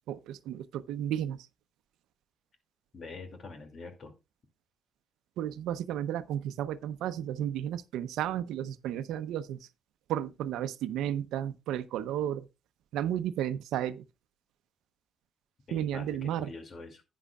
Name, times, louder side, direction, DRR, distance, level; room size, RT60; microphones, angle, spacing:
voice 1, 0.1-1.5 5.4-9.7 10.1-12.5 12.9-14.0 15.7-16.5, right 11 dB, 90° right, 0.7 m, -33 dB
voice 2, 2.9-4.1 15.7-17.0, left 3 dB, 45° left, 2.4 m, -45 dB
11.0 x 9.4 x 2.4 m
cardioid pair, 90°, 0 cm